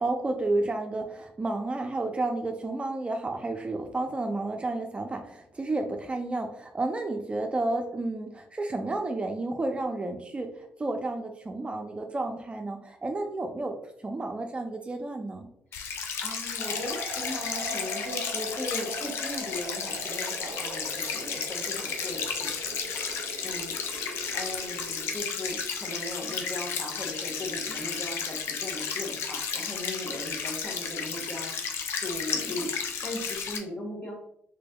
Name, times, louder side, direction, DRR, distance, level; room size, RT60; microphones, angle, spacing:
voice 1, 0.0-13.8 14.0-15.5, right 2 dB, 25° right, 4 dB, 0.4 m, -31 dB
sound 1, 15.7-33.6, left 6 dB, 75° left, 0.5 m, -33 dB
voice 2, 16.2-22.8 23.1-23.8 24.3-31.5 31.9-32.7 33.0-34.1, left 1 dB, 45° left, -1 dB, 1.4 m, -38 dB
sound 2, 16.6-25.2, right 3 dB, 90° right, 0.4 m, -42 dB
3.3 x 3.3 x 2.3 m, 0.72 s
supercardioid pair, 65°, 4 cm